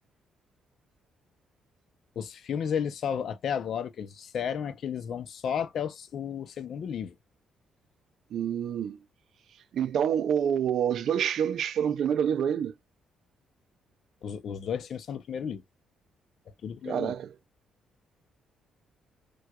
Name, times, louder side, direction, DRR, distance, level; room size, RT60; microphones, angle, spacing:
voice 1, 2.2-7.1 14.2-15.6 16.6-17.2, left 8 dB, 60° left, 0.5 m, -33 dB
voice 2, 8.3-9.0 9.7-12.7 16.8-17.3, right 8 dB, 70° right, 0.4 m, -27 dB
4.5 x 2.2 x 2.3 m
cardioid pair, 90°, 0 cm